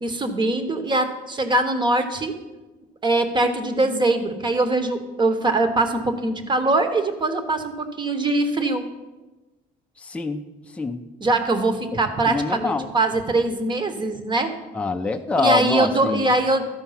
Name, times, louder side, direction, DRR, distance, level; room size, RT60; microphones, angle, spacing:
voice 1, 0.0-2.3 3.0-8.9 11.2-14.5 15.4-16.7, right 2 dB, 25° right, 8 dB, 1.0 m, -22 dB
voice 2, 10.0-10.4 10.8-11.0 11.9-12.0 12.3-12.9 14.7-16.3, left 3 dB, 5° left, 5 dB, 0.5 m, -25 dB
13.0 x 4.6 x 5.6 m, 1.1 s
cardioid pair, 110°, 17 cm